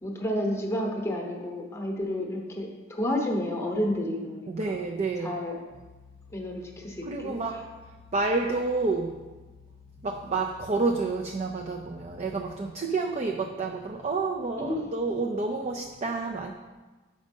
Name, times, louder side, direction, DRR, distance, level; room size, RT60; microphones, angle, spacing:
voice 1, 0.0-4.7 5.2-5.6 6.3-7.6 14.6-14.9, left 1 dB, 15° left, 1 dB, 0.9 m, -31 dB
voice 2, 4.5-5.4 7.1-7.6 8.1-9.2 10.0-16.5, right 3 dB, 35° right, 2 dB, 0.4 m, -29 dB
sound 1, 5.7-12.5, left 6 dB, 90° right, 1.0 m, -53 dB
6.4 x 5.2 x 5.2 m, 1.3 s
head